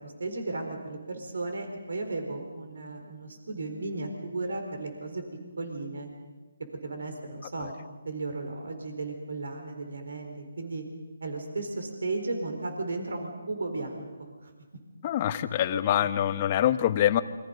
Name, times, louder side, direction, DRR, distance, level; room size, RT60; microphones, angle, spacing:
voice 1, 0.0-5.2 5.6-6.1 6.8-7.7 8.0-10.8 11.2-14.1 14.4-14.5 16.0-16.1, right 3 dB, 70° right, 5 dB, 4.4 m, -35 dB
voice 2, 15.0-17.2, left 11 dB, 30° left, 12 dB, 1.0 m, -25 dB
28.0 x 24.0 x 5.4 m, 1.3 s
figure-of-eight pair, 155°, 0 cm